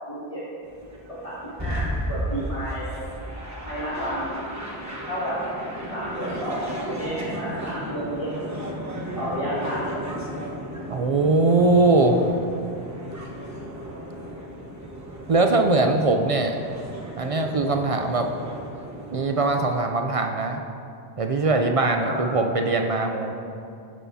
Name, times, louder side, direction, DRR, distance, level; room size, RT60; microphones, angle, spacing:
voice 1, 0.1-0.4 1.2-2.9 3.6-4.4 5.1-5.4 5.9-8.3 9.2-10.0 22.0-22.2, equal, 30° left, -11 dB, 2.0 m, -31 dB
sound 1, 0.6-19.8, equal, 15° right, 1.1 m, -34 dB
voice 2, 10.9-12.4 15.3-16.6 17.2-18.3 19.1-20.6 21.2-23.3, right 2 dB, 50° right, 4 dB, 0.4 m, -21 dB
15.0 x 6.3 x 2.7 m, 2.6 s
omnidirectional pair, 1.1 m